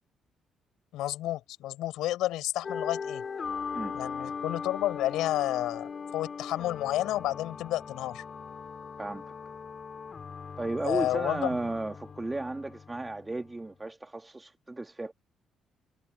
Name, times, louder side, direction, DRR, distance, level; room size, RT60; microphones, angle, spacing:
voice 1, 0.9-3.2 3.9-8.2 10.8-11.6, left 15 dB, 75° left, 5.0 m, -31 dB
sound 1, 2.6-13.7, left 6 dB, 45° left, 2.5 m, -39 dB
voice 2, 10.6-15.1, right 2 dB, 20° right, 2.0 m, -34 dB
hypercardioid pair, 50°, 0 cm